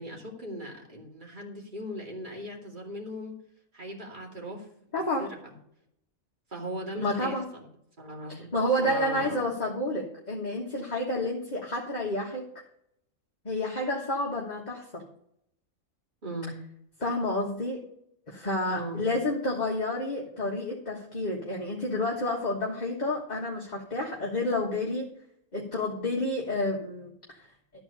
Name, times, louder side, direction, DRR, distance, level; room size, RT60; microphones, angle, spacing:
voice 1, 0.0-3.4 3.7-4.7 5.2-5.5 6.5-7.7 8.0-8.5 8.8-9.4 16.2-16.6 18.7-19.1, equal, 35° right, -1 dB, 2.6 m, -38 dB
voice 2, 4.9-5.3 7.0-7.5 8.3-12.4 13.4-15.0 17.0-17.8 18.3-25.1 25.5-27.5, left 1 dB, 30° left, -2 dB, 1.6 m, -30 dB
13.0 x 4.7 x 8.1 m, 0.72 s
omnidirectional pair, 1.4 m